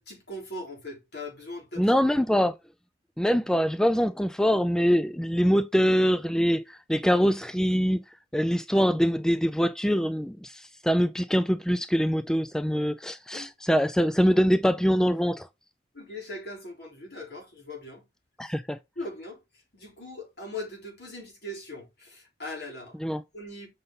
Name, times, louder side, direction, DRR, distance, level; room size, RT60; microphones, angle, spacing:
voice 1, 0.0-1.9 13.3-13.5 15.9-18.0 19.0-19.4 19.7-22.9 23.3-23.7, left 1 dB, 70° left, 4.1 m, -40 dB
voice 2, 1.8-2.5 3.2-8.0 8.3-15.5 18.4-18.8 23.0-23.2, equal, 5° left, 0.3 m, -24 dB
7.7 x 5.1 x 4.0 m
head